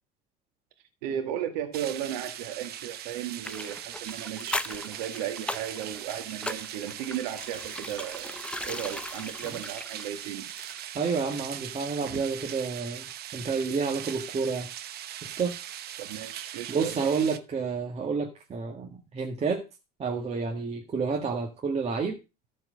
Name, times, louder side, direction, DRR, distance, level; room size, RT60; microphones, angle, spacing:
voice 1, 1.0-8.4 8.6-10.5 16.0-17.2, right 10 dB, 85° right, 6 dB, 2.1 m, -35 dB
sound 1, 1.7-17.4, right 11 dB, 50° right, 1.0 m, -40 dB
sound 2, 3.4-11.0 11.3-11.4, left 2 dB, 5° left, 0.5 m, -39 dB
voice 2, 10.9-13.1 13.3-14.7 15.2-15.6 16.7-19.6 20.0-22.2, right 5 dB, 30° right, 0 dB, 1.9 m, -29 dB
14.0 x 4.8 x 6.3 m, 0.29 s
supercardioid pair, 100°, 21 cm